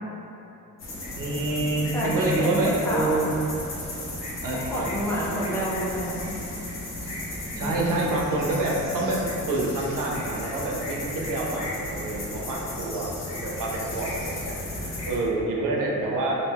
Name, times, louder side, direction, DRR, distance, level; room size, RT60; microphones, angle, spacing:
sound 1, 0.8-15.2, left 1 dB, 55° left, 0.6 m, -35 dB
voice 1, 1.1-3.4 4.4-4.9 7.6-9.2 9.5-13.1 13.4-16.4, right 2 dB, 80° right, -2 dB, 0.5 m, -27 dB
voice 2, 1.9-3.2 4.5-6.4 7.5-8.0, equal, 10° left, -7 dB, 0.4 m, -29 dB
2.5 x 2.2 x 3.3 m, 3.0 s
wide cardioid pair, 150°, 32 cm